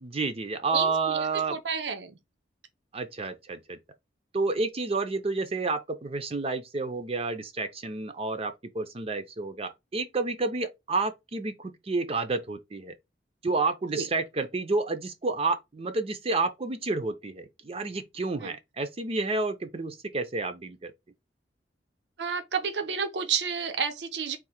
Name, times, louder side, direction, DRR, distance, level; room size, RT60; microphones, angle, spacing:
voice 1, 0.0-1.6 2.9-3.8 4.3-12.9 13.4-20.9, right 3 dB, 35° right, 0.5 m, -30 dB
voice 2, 0.7-2.2 14.0-14.1 18.4-18.5 22.2-24.4, right 6 dB, 75° right, 0.7 m, -30 dB
3.7 x 2.6 x 4.2 m
head